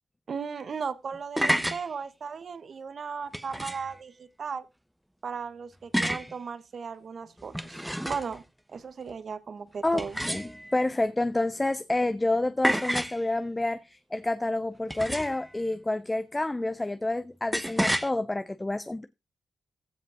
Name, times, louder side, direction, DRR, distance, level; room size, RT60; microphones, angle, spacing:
voice 1, 0.3-4.7 5.2-8.4 8.7-10.2, right 6 dB, 60° right, 1.2 m, -36 dB
sound 1, 1.1-1.8 3.3-3.9 5.9-6.3 7.4-8.4 10.0-10.8 12.6-13.2 14.9-15.5 17.5-18.1, equal, 5° right, 0.9 m, -29 dB
voice 2, 9.8-19.1, left 2 dB, 15° left, 0.6 m, -29 dB
15.0 x 5.3 x 5.0 m
wide cardioid pair, 115°, 0 cm